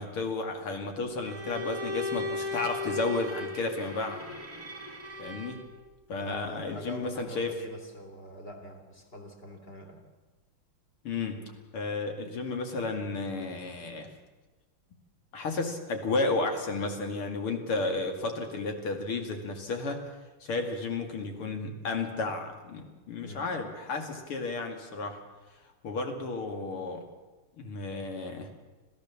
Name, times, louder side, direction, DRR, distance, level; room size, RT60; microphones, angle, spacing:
voice 1, 0.0-4.2 5.2-5.6 6.1-7.5 11.0-14.1 15.3-20.0 20.4-25.2 25.8-27.0 27.6-28.6, left 3 dB, 80° left, 4 dB, 3.3 m, -32 dB
Bowed string instrument, 1.2-5.8, left 2 dB, 15° right, 2.6 m, -36 dB
voice 2, 6.2-10.0 23.2-23.5, equal, 25° left, 3 dB, 3.4 m, -44 dB
27.0 x 15.5 x 7.3 m, 1.2 s
omnidirectional pair, 2.4 m